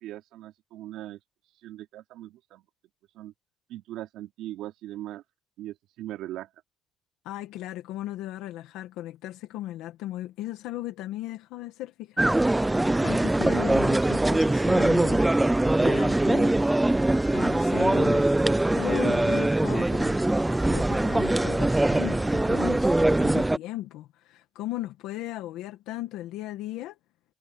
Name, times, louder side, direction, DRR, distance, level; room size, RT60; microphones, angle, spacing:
voice 1, 0.0-1.2 1.6-2.6 3.1-3.3 3.7-5.2 5.6-6.5, right 14 dB, 70° right, 3.1 m, -39 dB
voice 2, 7.2-15.3 15.8-16.6 17.3-18.3 18.8-20.2 20.7-27.0, left 15 dB, 90° left, 1.4 m, -37 dB
sound 1, 12.2-23.6, right 1 dB, 5° right, 0.3 m, -22 dB
cardioid pair, 175°, 0 cm